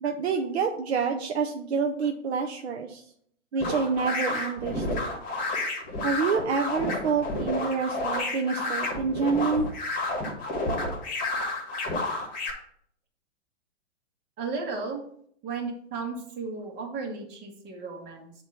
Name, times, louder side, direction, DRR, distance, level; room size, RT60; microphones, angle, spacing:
voice 1, 0.0-3.0 3.5-5.2 6.0-9.7, right 5 dB, 65° right, 3 dB, 0.8 m, -28 dB
sound 1, 3.6-12.5, left 2 dB, 25° left, 2.1 m, -30 dB
voice 2, 14.4-15.0 15.4-18.3, right 4 dB, 30° right, 1 dB, 1.7 m, -34 dB
8.0 x 3.1 x 5.8 m, 0.66 s
hypercardioid pair, 115°, 35 cm